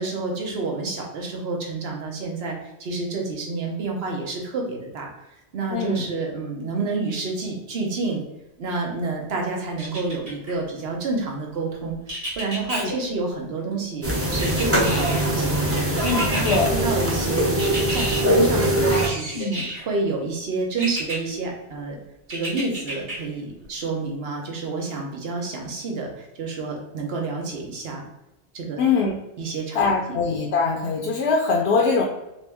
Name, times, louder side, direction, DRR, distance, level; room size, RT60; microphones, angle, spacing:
voice 1, 0.0-5.1 5.5-8.2 8.6-16.4 16.7-22.0 22.3-28.0 28.5-28.8 29.4-29.8 30.1-30.2, right 3 dB, 65° right, 0 dB, 1.0 m, -29 dB
voice 2, 5.7-6.0 12.7-13.0 16.5-16.7 19.4-19.7 28.8-29.1 29.7-32.0, left 4 dB, 70° left, 0 dB, 0.8 m, -22 dB
sound 1, 9.8-10.6 12.1-12.8 14.4-15.3 16.0-16.6 17.6-18.2 18.9-19.9 20.8-21.2 22.3-23.2 23.6-23.7, right 1 dB, 35° right, 1.2 m, -31 dB
sound 2, 14.0-19.1, right 1 dB, 15° right, 0.6 m, -22 dB
3.0 x 3.0 x 3.4 m, 0.94 s
omnidirectional pair, 1.1 m